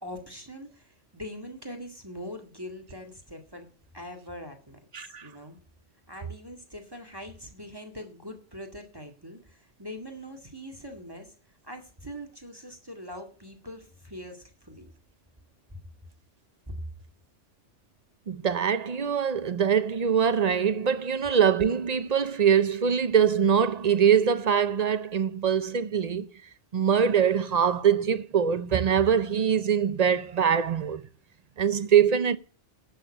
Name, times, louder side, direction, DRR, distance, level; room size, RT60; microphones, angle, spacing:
voice 1, 0.0-5.6 6.1-11.3 11.6-14.9 16.7-16.8, equal, 20° right, 2.0 m, -42 dB
voice 2, 4.9-5.3 18.3-26.3 26.7-31.0 31.6-32.4, right 7 dB, 45° right, 0.6 m, -23 dB
11.5 x 6.8 x 8.7 m
omnidirectional pair, 1.2 m